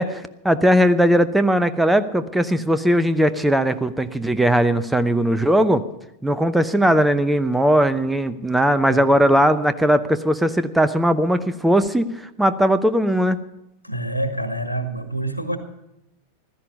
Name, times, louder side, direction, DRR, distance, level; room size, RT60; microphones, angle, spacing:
voice 1, 0.0-5.8 6.2-13.4, equal, 5° right, 13 dB, 0.7 m, -19 dB
voice 2, 13.8-15.6, right 1 dB, 90° right, 9 dB, 1.5 m, -27 dB
15.5 x 13.5 x 5.4 m, 0.86 s
figure-of-eight pair, 90°, 0 cm